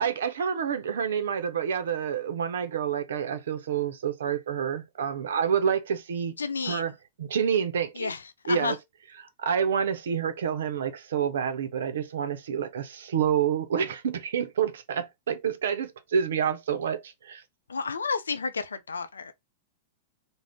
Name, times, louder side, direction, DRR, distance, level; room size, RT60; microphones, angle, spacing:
voice 1, 0.0-6.3 6.7-6.9 7.2-8.1 8.5-8.8 9.2-17.4, right 7 dB, 70° right, 0.5 m, -28 dB
voice 2, 6.4-6.8 8.0-8.8 17.7-19.3, left 5 dB, 80° left, 0.4 m, -31 dB
2.4 x 2.0 x 3.3 m
figure-of-eight pair, 100°, 0 cm